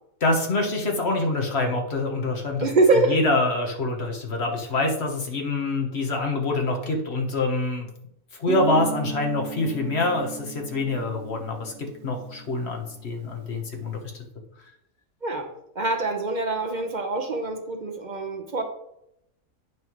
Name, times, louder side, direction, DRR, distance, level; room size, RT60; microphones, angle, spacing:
voice 1, 0.2-2.7 3.1-7.9 8.4-14.0, left 2 dB, 50° left, 2 dB, 1.3 m, -25 dB
voice 2, 2.6-3.2 15.2-15.5 15.7-18.6, right 3 dB, 35° right, 4 dB, 0.9 m, -24 dB
Guitar, 8.5-13.0, right 7 dB, 65° right, 0.8 m, -35 dB
9.3 x 5.5 x 3.0 m, 0.78 s
omnidirectional pair, 1.5 m